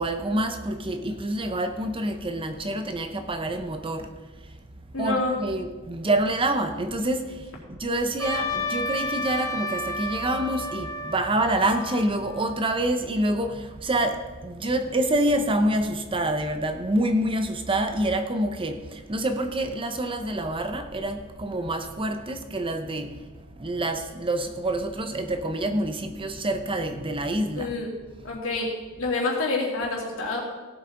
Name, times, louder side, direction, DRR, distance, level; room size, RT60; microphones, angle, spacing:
voice 1, 0.0-4.1 5.0-7.3 7.7-23.1 23.6-27.7, right 1 dB, 25° right, 0.7 m, -27 dB
voice 2, 4.9-5.4 27.5-27.9 28.2-28.7 29.0-30.4, left 3 dB, 65° left, 3.0 m, -27 dB
Trumpet, 8.2-12.7, left 1 dB, 15° left, 1.3 m, -32 dB
17.0 x 8.1 x 3.8 m
head